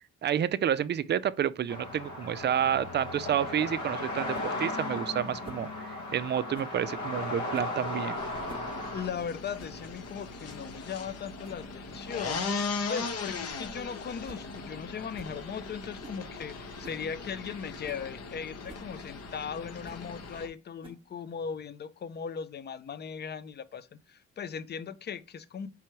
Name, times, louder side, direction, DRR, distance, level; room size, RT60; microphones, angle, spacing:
voice 1, 0.2-8.2, right 9 dB, 35° right, 0.4 m, -29 dB
sound 1, 1.7-9.1, left 2 dB, 75° left, 1.3 m, -36 dB
sound 2, 4.3-4.5 5.4-5.7 6.5-6.8 7.5-7.8 8.3-8.7 9.0-9.1 9.6-9.8 10.2-10.3 10.5-10.7 11.4-11.7 12.3-12.5 13.2-13.5 13.8-13.9 14.2-14.5 14.7-14.8 15.1-15.4 16.0-16.2 16.8-17.0 17.5-17.6 17.8-18.1 18.7-18.9 19.8-20.1 20.8-21.2, right 2 dB, 15° right, 1.0 m, -50 dB
sound 3, 8.2-20.5, left 4 dB, 55° left, 0.9 m, -39 dB
voice 2, 8.9-12.5 12.9-25.7, left 7 dB, 35° left, 0.5 m, -38 dB
4.5 x 3.4 x 3.0 m
cardioid pair, 90°, 30 cm